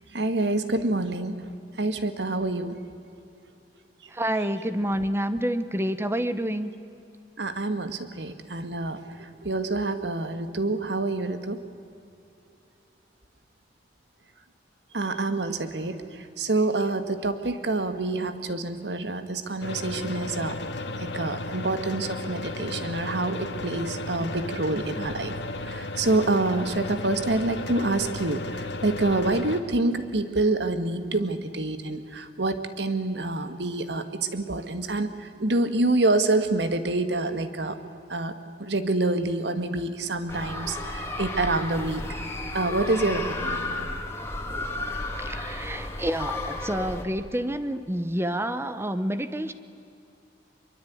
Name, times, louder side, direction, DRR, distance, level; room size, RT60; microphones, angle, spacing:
voice 1, 0.0-1.4 1.8-2.8 7.4-11.6 14.9-20.6 21.0-25.3 25.6-37.8 38.1-38.3 38.6-42.0 42.5-43.9, right 2 dB, 70° right, 10 dB, 1.8 m, -27 dB
voice 2, 4.1-6.7 44.9-49.5, right 1 dB, 15° right, 12 dB, 0.9 m, -28 dB
sound 1, 19.6-29.6, left 2 dB, 80° left, 2.0 m, -34 dB
sound 2, 40.3-47.0, left 2 dB, 15° left, 2.7 m, -33 dB
24.0 x 23.0 x 9.4 m, 2.7 s
head